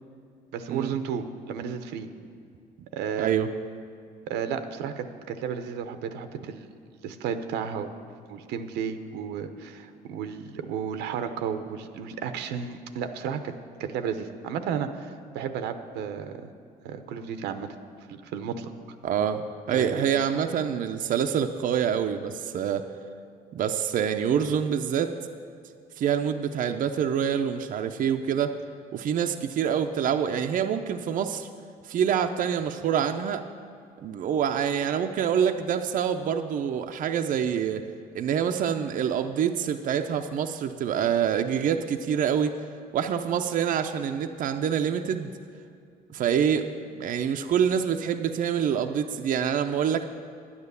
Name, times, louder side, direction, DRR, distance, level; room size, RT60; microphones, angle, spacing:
voice 1, 0.5-2.1 2.9-3.3 4.3-6.7 7.0-7.9 8.3-13.5 13.8-16.5 16.8-17.7 18.1-18.7 19.7-20.1, right 7 dB, 85° right, 9 dB, 0.8 m, -33 dB
voice 2, 3.2-3.5 19.0-22.9 23.5-25.2 26.0-28.6 28.9-31.5 31.8-33.4 34.0-37.8 38.1-42.5 42.9-45.3 46.1-46.7 46.9-50.1, right 8 dB, 55° right, 6 dB, 0.6 m, -26 dB
10.0 x 9.7 x 6.8 m, 2.3 s
cardioid pair, 110°, 17 cm